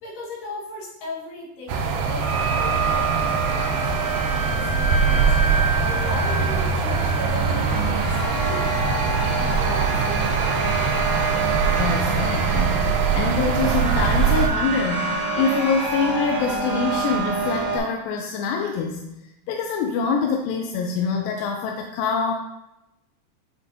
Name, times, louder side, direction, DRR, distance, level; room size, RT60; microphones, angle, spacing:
voice 1, 0.0-10.5, left 1 dB, 75° left, -5 dB, 3.3 m, -37 dB
sound 1, 1.7-14.5, right 5 dB, 80° right, 2.3 m, -23 dB
sound 2, 2.2-17.8, right 3 dB, 50° right, 1.3 m, -27 dB
voice 2, 11.7-19.0 19.5-22.3, left 5 dB, 90° left, 2 dB, 2.3 m, -25 dB
9.5 x 4.5 x 2.8 m, 0.90 s
omnidirectional pair, 3.9 m